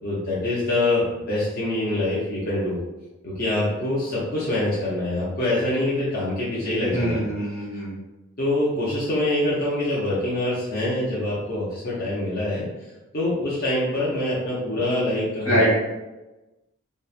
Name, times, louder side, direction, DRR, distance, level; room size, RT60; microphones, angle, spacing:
voice 1, 0.0-2.8 3.2-7.2 8.4-12.6 13.1-15.8, left 1 dB, 45° left, -8 dB, 0.6 m, -25 dB
voice 2, 6.9-7.9 15.4-15.8, right 1 dB, 75° left, -6 dB, 1.1 m, -23 dB
2.8 x 2.0 x 2.4 m, 1.1 s
head